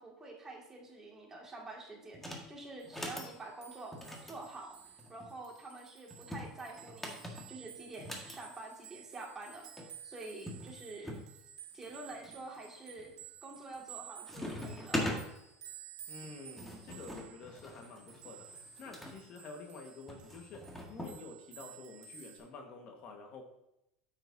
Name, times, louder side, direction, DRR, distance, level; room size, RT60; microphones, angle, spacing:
voice 1, 0.0-4.8 5.1-11.1 11.7-13.1 13.4-15.2, right 2 dB, 20° right, -1 dB, 2.2 m, -48 dB
sound 1, 2.1-2.5 2.8-3.3 3.9-5.3 6.1-8.4 9.5-9.6 9.8-9.9 10.5-11.3 11.8-12.3 12.9-13.2 13.6-14.0 14.3-15.2 16.2-19.1 20.1-21.2, left 1 dB, 10° left, 1.8 m, -41 dB
sound 2, 2.8-22.4, right 8 dB, 45° right, 2.2 m, -54 dB
voice 2, 16.1-23.4, left 3 dB, 50° left, 3 dB, 1.5 m, -49 dB
9.2 x 7.8 x 2.7 m, 0.84 s
supercardioid pair, 110°, 3 cm